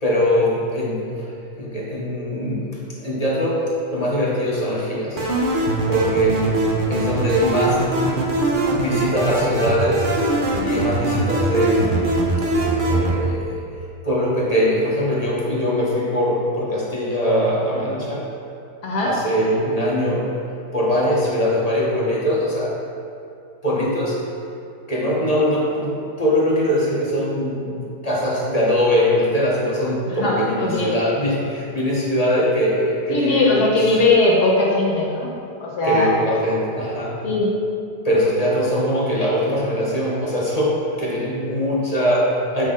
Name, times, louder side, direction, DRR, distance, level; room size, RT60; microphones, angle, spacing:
voice 1, 0.0-3.6 3.9-5.2 5.8-6.5 6.9-8.0 8.7-10.1 10.6-12.2 12.8-13.6 14.0-18.3 19.0-20.3 20.7-22.7 23.6-24.2 24.9-33.7 35.8-37.2 38.0-42.7, equal, 25° left, -6 dB, 1.1 m, -22 dB
sound 1, 5.2-13.2, right 2 dB, 40° right, 0.7 m, -21 dB
voice 2, 30.1-30.9 33.1-35.3 35.6-36.2 37.2-37.5, left 2 dB, 65° left, -3 dB, 1.5 m, -19 dB
7.6 x 6.1 x 3.8 m, 2.5 s
omnidirectional pair, 1.8 m